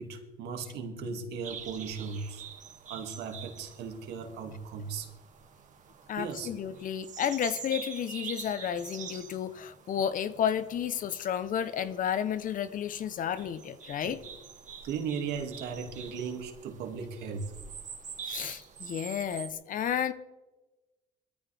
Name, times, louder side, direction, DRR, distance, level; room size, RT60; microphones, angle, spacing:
voice 1, 0.0-2.4 2.9-5.1 6.2-6.9 8.8-8.9 9.3-9.4 14.0-14.1 14.8-17.5, right 5 dB, 75° right, 4 dB, 2.3 m, -37 dB
sound 1, 1.4-19.5, right 7 dB, 45° right, 2.2 m, -46 dB
voice 2, 6.1-14.2 18.3-20.1, left 9 dB, 55° left, 14 dB, 0.9 m, -32 dB
21.0 x 14.0 x 3.5 m, 1.1 s
cardioid pair, 110°, 17 cm